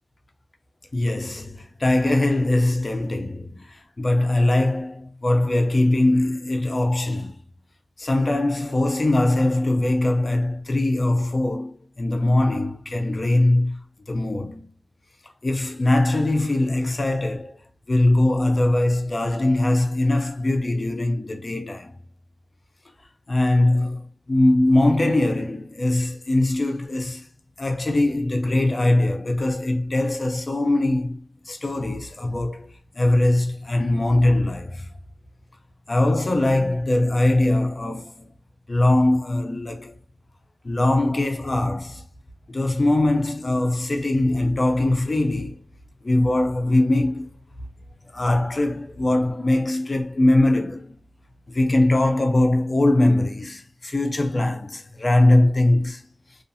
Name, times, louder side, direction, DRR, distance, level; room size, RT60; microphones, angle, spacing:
voice 1, 0.9-7.4 8.0-14.7 15.4-17.6 17.9-22.0 23.3-27.3 27.6-34.9 35.9-38.3 38.7-40.0 40.6-42.0 42.5-45.6 46.0-47.3 48.1-51.0 51.5-56.0, left 1 dB, 45° left, 0.5 m, -21 dB
2.5 x 2.4 x 2.6 m
wide cardioid pair, 55°, 0 cm